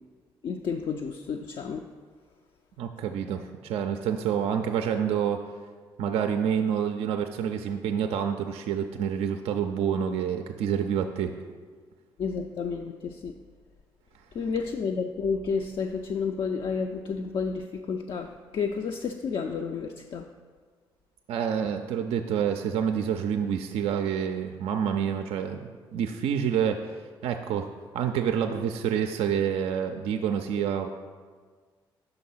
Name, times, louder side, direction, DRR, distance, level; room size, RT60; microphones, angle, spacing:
voice 1, 0.4-1.8 12.2-13.3 14.3-20.2, left 5 dB, 45° left, 4 dB, 0.4 m, -31 dB
voice 2, 2.8-5.4 6.0-11.3 21.3-27.0 27.2-27.7 27.9-30.9, right 8 dB, 55° right, 6 dB, 0.4 m, -28 dB
5.8 x 3.9 x 5.5 m, 1.5 s
figure-of-eight pair, 40°, 12 cm